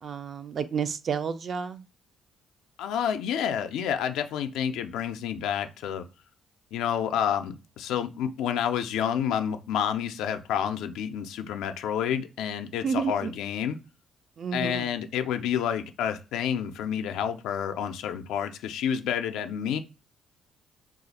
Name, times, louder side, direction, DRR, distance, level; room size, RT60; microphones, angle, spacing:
voice 1, 0.0-1.8 12.8-13.3 14.4-14.9, right 6 dB, 50° right, 0.4 m, -30 dB
voice 2, 2.8-6.1 6.7-13.8 14.5-19.8, left 9 dB, 85° left, 0.3 m, -29 dB
2.4 x 2.4 x 4.0 m
cardioid pair, 80°, 0 cm